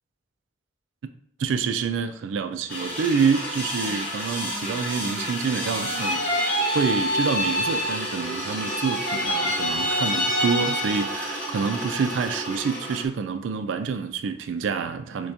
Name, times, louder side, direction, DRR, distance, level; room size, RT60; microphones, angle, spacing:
voice 1, 1.4-6.2 6.7-15.3, right 5 dB, 90° right, 9 dB, 0.3 m, -27 dB
sound 1, 2.7-13.0, equal, 10° left, 1.2 m, -32 dB
sound 2, 5.6-8.3 8.5-11.3, equal, 50° left, 0.8 m, -27 dB
6.5 x 2.3 x 2.7 m, 0.71 s
head